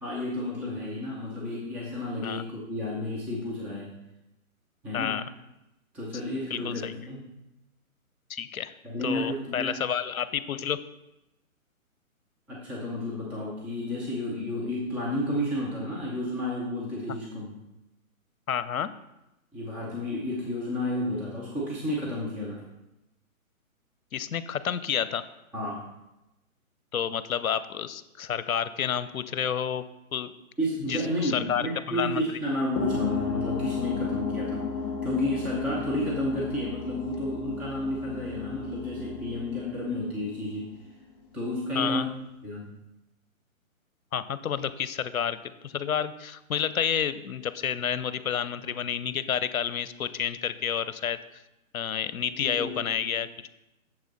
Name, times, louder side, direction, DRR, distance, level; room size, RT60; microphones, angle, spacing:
voice 1, 0.0-4.0 4.8-5.2 5.9-7.2 8.8-9.8 12.5-17.5 19.5-22.6 25.5-25.9 30.6-34.7 35.0-40.7 41.3-42.1 42.4-42.7 52.3-53.1, left 1 dB, 5° right, -6 dB, 0.6 m, -31 dB
voice 2, 6.5-6.9 8.3-8.7 9.0-10.8 18.5-18.9 24.1-25.2 26.9-29.8 30.1-30.3 30.9-32.4 41.8-42.1 44.1-51.2 51.7-53.5, left 8 dB, 75° left, 14 dB, 0.7 m, -30 dB
sound 1, 32.8-40.9, left 5 dB, 30° left, 1.1 m, -34 dB
8.0 x 7.1 x 4.0 m, 0.94 s
hypercardioid pair, 140°, 42 cm